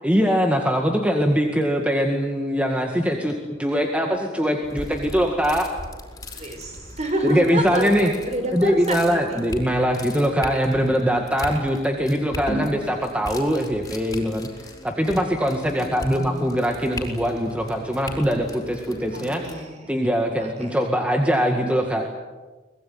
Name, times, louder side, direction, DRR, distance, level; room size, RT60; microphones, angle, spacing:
voice 1, 0.0-5.7 7.2-8.1 8.5-19.4 19.9-22.1, equal, 5° right, 3 dB, 2.0 m, -22 dB
sound 1, 4.6-19.5, equal, 20° left, 5.0 m, -37 dB
voice 2, 6.4-9.4 15.7-16.5 19.1-19.9 20.4-20.7, right 1 dB, 35° right, 5 dB, 5.5 m, -29 dB
24.5 x 20.5 x 9.5 m, 1.2 s
head